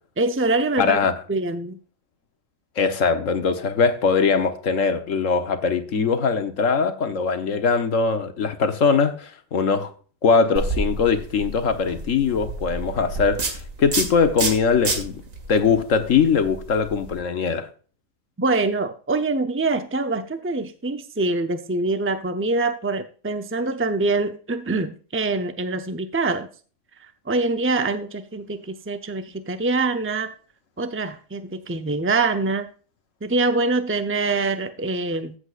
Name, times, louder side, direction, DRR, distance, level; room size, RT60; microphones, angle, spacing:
voice 1, 0.2-1.8 18.4-26.5 27.0-30.3 30.8-32.7 33.2-35.4, right 3 dB, 20° right, 0.4 m, -24 dB
voice 2, 0.8-1.1 2.8-9.9 10.2-15.2 15.5-17.7, left 5 dB, 75° left, 1.5 m, -21 dB
sound 1, 10.5-17.2, right 3 dB, 85° right, 2.4 m, -30 dB
14.5 x 8.1 x 2.4 m
omnidirectional pair, 1.3 m